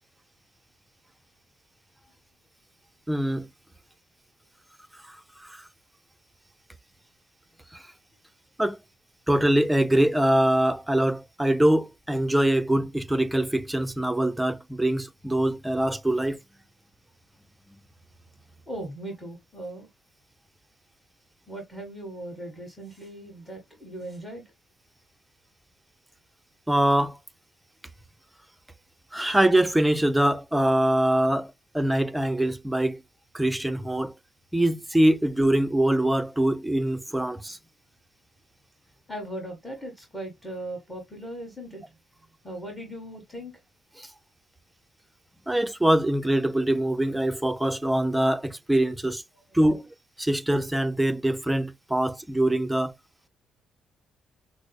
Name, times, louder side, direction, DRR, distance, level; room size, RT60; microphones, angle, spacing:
voice 1, 3.1-3.5 5.1-5.2 5.4-5.6 7.7-7.9 8.6-8.8 9.3-16.4 26.7-27.2 29.1-33.0 33.3-34.1 34.5-37.6 44.0-44.1 45.5-49.2 49.5-49.9 50.2-52.9, right 1 dB, 5° right, 0.6 m, -23 dB
voice 2, 18.7-19.9 21.5-24.4 39.1-41.8 42.4-43.5, right 1 dB, 15° left, 1.7 m, -38 dB
6.1 x 2.1 x 2.2 m
cardioid pair, 90°, 0 cm